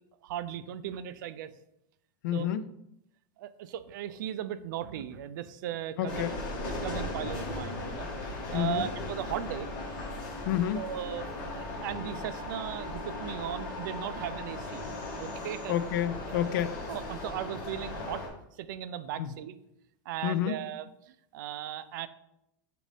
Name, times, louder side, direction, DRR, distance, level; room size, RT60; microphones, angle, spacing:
voice 1, 0.2-1.5 2.3-2.5 3.4-6.4 6.8-9.7 10.7-11.3 11.5-14.8 15.2-15.8 16.9-18.2 18.5-19.6 20.1-22.1, right 10 dB, 70° right, 13 dB, 0.4 m, -37 dB
voice 2, 2.2-2.7 6.0-6.3 8.5-8.9 10.5-10.8 15.7-16.8 19.2-19.3 20.2-20.6, left 10 dB, 70° left, 13 dB, 0.4 m, -29 dB
sound 1, 6.1-18.3, left 2 dB, 40° left, 1.3 m, -37 dB
6.3 x 2.5 x 3.3 m, 0.81 s
supercardioid pair, 165°, 11 cm